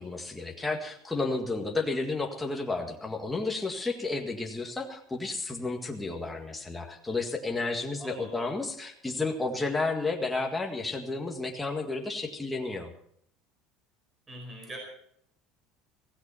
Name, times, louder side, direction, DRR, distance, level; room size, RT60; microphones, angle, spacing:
voice 1, 0.0-12.9, left 3 dB, 10° left, 2 dB, 1.9 m, -32 dB
voice 2, 8.0-8.5 14.3-14.8, equal, 15° right, 1 dB, 5.1 m, -43 dB
16.0 x 16.0 x 4.4 m, 0.66 s
cardioid pair, 150°, 0 cm